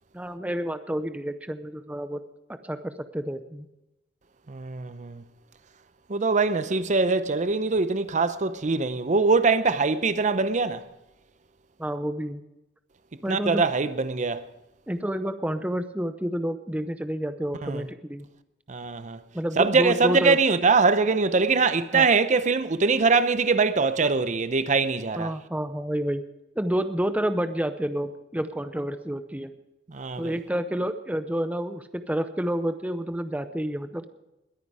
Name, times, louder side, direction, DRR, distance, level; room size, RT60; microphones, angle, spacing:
voice 1, 0.1-2.2 2.5-3.7 11.8-12.4 13.2-13.6 14.9-18.3 19.3-20.4 21.9-22.1 25.2-26.2 26.6-29.5 30.2-34.1, equal, 10° right, 0.6 m, -29 dB
voice 2, 4.5-5.2 6.1-10.8 13.3-14.4 17.6-17.9 18.7-19.2 19.6-25.3 29.9-30.3, right 4 dB, 45° right, 0.7 m, -23 dB
21.0 x 9.6 x 4.9 m
head